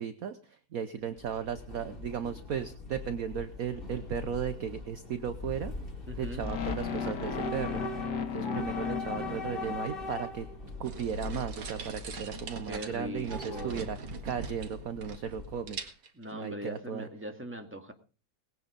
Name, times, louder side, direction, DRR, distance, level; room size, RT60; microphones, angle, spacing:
voice 1, 0.0-5.7 6.2-7.8 8.3-10.5 10.8-14.0 14.2-15.8 16.3-17.1, right 8 dB, 55° right, 12 dB, 1.1 m, -36 dB
Train / Subway metro underground, 1.0-15.9, left 3 dB, 25° left, 2.9 m, -42 dB
voice 2, 6.1-6.5 12.7-13.9 16.1-17.9, equal, 5° right, 5 dB, 2.2 m, -40 dB
sound 1, 6.4-10.5, left 6 dB, 60° left, 2.1 m, -35 dB
sound 2, 10.8-15.4 15.7-16.2, right 3 dB, 90° right, 2.7 m, -41 dB
19.5 x 9.6 x 5.2 m, 0.37 s
omnidirectional pair, 2.1 m